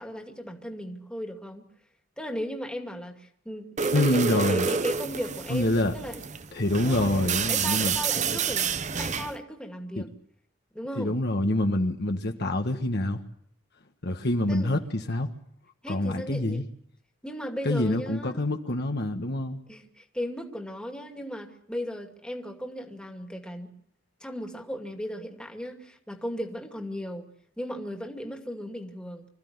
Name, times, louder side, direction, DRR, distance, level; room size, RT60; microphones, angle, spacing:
voice 1, 0.0-1.7 2.2-6.2 6.7-10.1 10.7-11.2 14.5-14.7 15.8-16.6 17.2-18.4 19.7-23.7 24.2-27.3 27.6-29.3, equal, 5° left, 3 dB, 2.4 m, -36 dB
sound 1, 3.8-9.4, right 6 dB, 35° right, 0.9 m, -29 dB
voice 2, 3.9-4.7 5.5-5.9 6.5-8.0 10.0-10.1 11.0-13.2 14.0-15.3 15.9-16.6 17.6-19.6, left 1 dB, 55° left, 5 dB, 1.5 m, -26 dB
26.0 x 15.0 x 9.6 m, 0.67 s
head